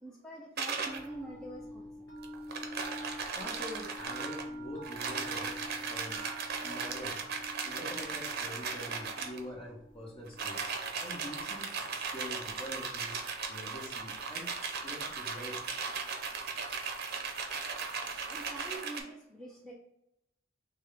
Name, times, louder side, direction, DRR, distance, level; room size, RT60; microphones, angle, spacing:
voice 1, 0.0-2.1 18.3-19.7, right 2 dB, 5° left, -4 dB, 0.5 m, -45 dB
sound 1, 0.6-1.1 2.2-4.5 4.8-9.4 10.3-19.0, right 5 dB, 50° right, 0.7 m, -37 dB
sound 2, 0.7-18.7, equal, 65° left, 1.3 m, -49 dB
voice 2, 3.3-6.3 6.6-7.2 7.6-10.7 11.0-13.2 13.5-14.5 14.8-15.6, equal, 30° left, -2 dB, 1.3 m, -45 dB
6.1 x 2.2 x 3.4 m, 0.81 s
head